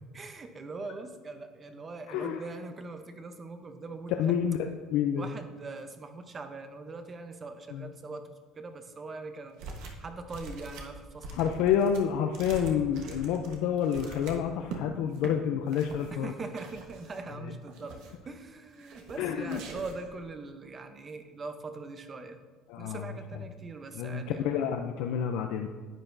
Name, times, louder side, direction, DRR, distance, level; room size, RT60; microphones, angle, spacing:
voice 1, 0.1-4.4 5.2-11.6 16.1-22.4 22.8-24.4, right 3 dB, 25° right, 8 dB, 0.7 m, -42 dB
voice 2, 2.1-2.4 4.2-5.3 7.7-7.9 11.3-16.3 17.4-17.5 19.2-19.6 22.7-23.1 23.9-25.7, left 8 dB, 75° left, 5 dB, 0.5 m, -29 dB
sound 1, 9.6-10.0 10.3-14.8 15.1-15.3 15.7-16.1 16.6-17.3 17.7-18.3 18.8-19.2 19.5-20.1, right 3 dB, 70° right, 1.2 m, -43 dB
10.0 x 8.8 x 2.6 m, 1.4 s
cardioid pair, 130°, 0 cm